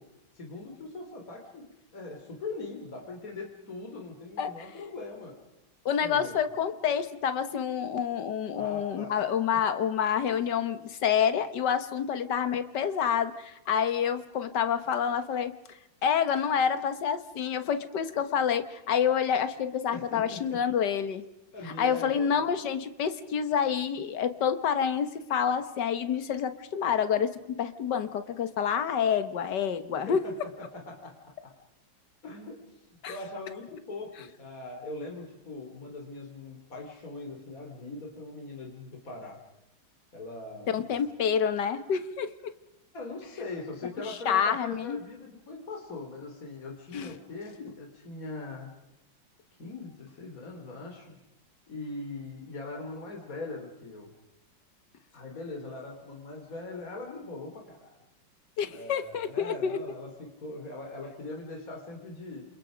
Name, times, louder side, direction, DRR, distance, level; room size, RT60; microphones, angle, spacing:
voice 1, 0.4-5.3 6.0-6.3 8.5-9.1 9.5-9.6 19.9-20.6 21.5-22.3 30.1-31.1 32.2-32.6 33.1-39.4 40.1-40.9 42.9-48.7 49.6-51.2 51.7-54.1 55.1-57.9 58.7-62.4, left 2 dB, 45° left, 0 dB, 3.8 m, -41 dB
voice 2, 5.9-21.2 21.6-30.2 33.0-33.1 40.7-42.3 44.1-45.0 46.9-47.1 47.6-47.7 58.6-59.8, left 7 dB, 65° left, 11 dB, 1.9 m, -28 dB
28.5 x 28.0 x 5.2 m, 0.89 s
omnidirectional pair, 2.1 m